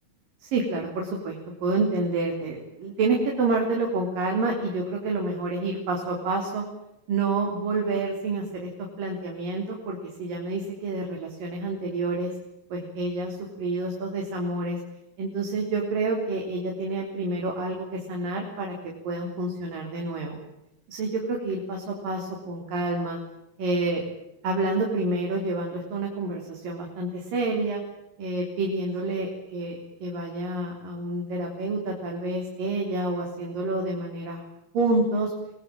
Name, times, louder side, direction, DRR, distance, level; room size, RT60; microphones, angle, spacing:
voice 1, 0.4-6.6 7.1-8.7 9.0-12.3 12.7-14.8 15.2-20.4 20.9-23.2 23.6-24.0 24.4-27.8 28.2-34.4 34.7-35.3, right 2 dB, 85° right, 0 dB, 5.4 m, -28 dB
24.5 x 20.0 x 9.0 m, 0.88 s
omnidirectional pair, 3.8 m